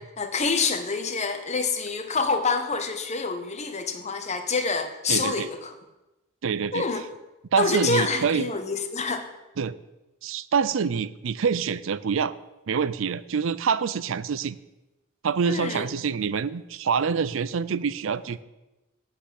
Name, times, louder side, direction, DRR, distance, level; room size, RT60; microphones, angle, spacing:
voice 1, 0.0-5.7 6.7-7.1 7.6-9.3 15.4-15.9, left 4 dB, 35° left, 8 dB, 1.0 m, -27 dB
voice 2, 5.1-5.5 6.4-6.8 7.5-8.5 9.6-9.8 10.2-12.3 12.7-14.6 15.2-18.4, right 6 dB, 65° right, 16 dB, 0.5 m, -26 dB
8.7 x 7.8 x 8.2 m, 1.0 s
head